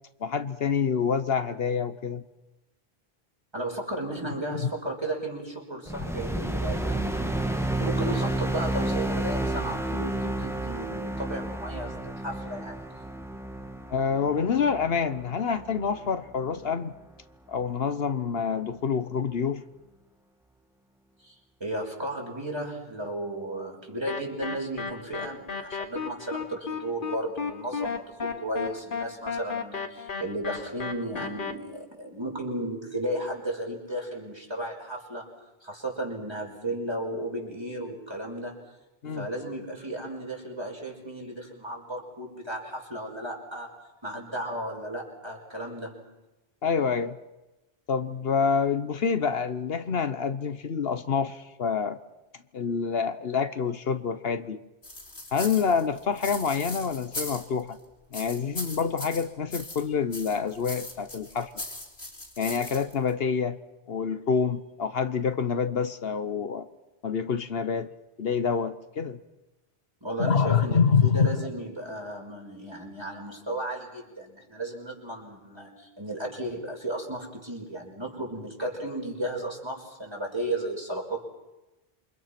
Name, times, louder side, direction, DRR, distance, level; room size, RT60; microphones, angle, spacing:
voice 1, 0.2-2.2 4.6-4.7 13.9-16.9 17.5-19.6 39.0-39.3 46.6-47.2 47.9-52.0 52.5-54.6 55.3-57.8 58.1-61.5 62.4-63.6 63.9-66.7 67.0-67.9 68.2-69.2 70.2-71.5, left 6 dB, 70° left, 11 dB, 1.2 m, -27 dB
voice 2, 3.5-12.8 21.2-21.3 21.6-35.3 35.6-38.6 39.1-43.7 44.0-46.0 70.0-81.2, right 1 dB, 25° right, 0 dB, 5.7 m, -34 dB
sound 1, 5.9-16.3, right 1 dB, 5° right, 1.7 m, -31 dB
sound 2, 24.1-31.5, left 5 dB, 55° left, 1.5 m, -34 dB
sound 3, 54.8-57.7 58.1-59.9 60.1-63.1, left 2 dB, 90° left, 4.0 m, -39 dB
28.0 x 25.5 x 6.0 m, 1.0 s
omnidirectional pair, 1.0 m